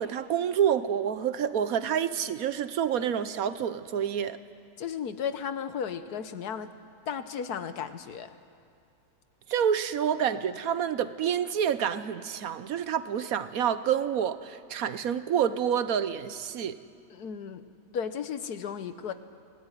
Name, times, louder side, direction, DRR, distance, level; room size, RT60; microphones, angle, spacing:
voice 1, 0.0-4.4 9.5-16.8, right 8 dB, 65° right, 13 dB, 1.2 m, -28 dB
voice 2, 4.8-6.7 7.1-8.3 17.1-17.6 17.9-19.1, left 7 dB, 75° left, 11 dB, 1.5 m, -34 dB
24.5 x 17.0 x 10.0 m, 2.3 s
omnidirectional pair, 1.7 m